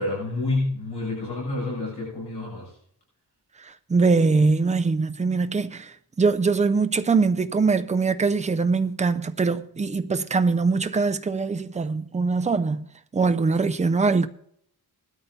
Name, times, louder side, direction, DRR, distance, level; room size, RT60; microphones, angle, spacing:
voice 1, 0.0-2.7, left 2 dB, 80° left, 6.8 m, -28 dB
voice 2, 3.6-12.9 13.1-14.3, right 4 dB, 20° right, 0.4 m, -22 dB
19.5 x 13.0 x 2.7 m
wide cardioid pair, 155°, 39 cm